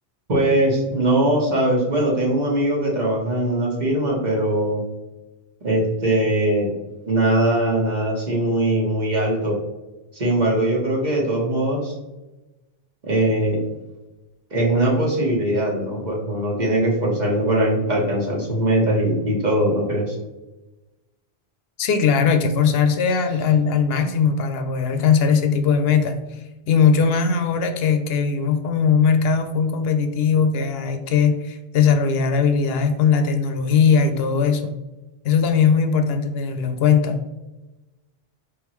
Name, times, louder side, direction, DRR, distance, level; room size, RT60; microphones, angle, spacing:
voice 1, 0.3-4.8 5.6-6.7 7.1-9.6 10.1-11.9 13.1-13.6 14.5-20.2, right 1 dB, 45° right, -3 dB, 1.2 m, -21 dB
voice 2, 21.8-26.2 26.7-34.7 35.2-37.2, left 6 dB, 75° left, 7 dB, 0.8 m, -19 dB
4.9 x 3.5 x 3.1 m, 1.1 s
omnidirectional pair, 1.0 m